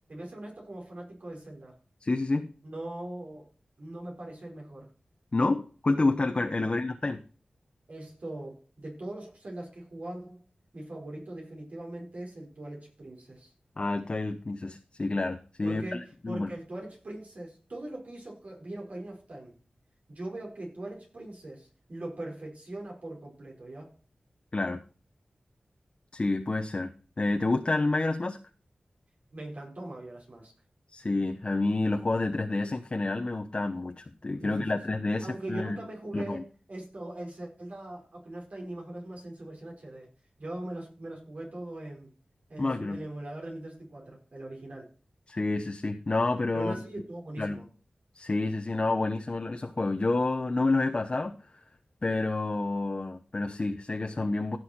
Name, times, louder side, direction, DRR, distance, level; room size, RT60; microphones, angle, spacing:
voice 1, 0.1-1.8 2.6-3.5 3.8-4.9 6.6-6.7 7.9-10.4 10.7-13.5 15.6-19.5 20.1-23.9 29.3-30.5 34.4-34.8 35.2-40.1 40.4-42.1 42.5-44.9 46.5-47.6, right 1 dB, 65° right, -2 dB, 4.9 m, -41 dB
voice 2, 2.0-2.5 5.3-7.2 13.8-16.5 24.5-24.8 26.1-26.9 27.2-28.4 30.9-35.8 36.1-36.4 42.6-43.0 45.3-46.8 47.4-47.6 48.1-51.3 52.0-54.6, left 2 dB, 40° left, 5 dB, 0.9 m, -29 dB
16.0 x 6.3 x 4.4 m, 0.38 s
wide cardioid pair, 80°, 3 cm